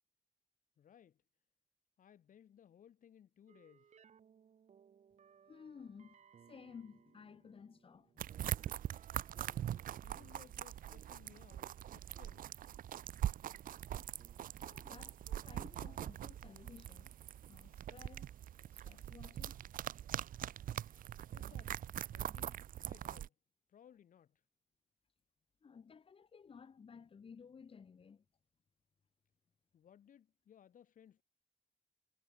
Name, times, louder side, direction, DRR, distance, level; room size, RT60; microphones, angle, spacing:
voice 1, 0.8-1.2 2.0-4.0 10.0-12.4 21.3-23.3 23.7-24.4 29.7-31.2, left 9 dB, 70° left, 2.0 m, -62 dB
sound 1, 3.5-16.1, right 7 dB, 55° right, 5.1 m, -67 dB
voice 2, 5.5-8.3 14.6-17.2 17.5-18.3 18.7-19.6 25.6-28.2, left 6 dB, 40° left, 3.3 m, -56 dB
sound 2, 8.2-23.3, right 11 dB, 85° right, 0.6 m, -43 dB
wide cardioid pair, 175°, 14 cm